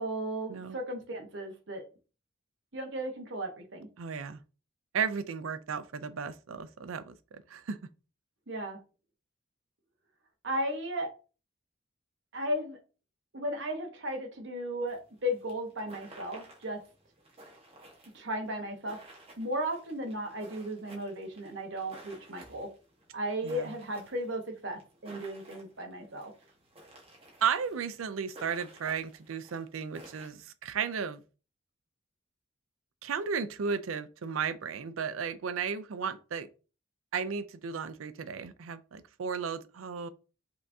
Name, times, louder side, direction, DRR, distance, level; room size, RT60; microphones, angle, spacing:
voice 1, 0.0-1.8 2.7-3.9 8.5-8.8 10.4-11.1 12.3-12.8 13.3-16.8 18.1-19.0 19.4-22.7 23.1-26.3, equal, 60° right, 1.1 m, -35 dB
voice 2, 4.0-4.4 4.9-7.8 23.4-23.7 27.4-31.2 33.0-36.5 37.1-40.1, right 6 dB, 85° right, 0.5 m, -34 dB
sound 1, 14.9-30.3, right 1 dB, 30° right, 1.3 m, -54 dB
5.4 x 3.5 x 2.7 m
head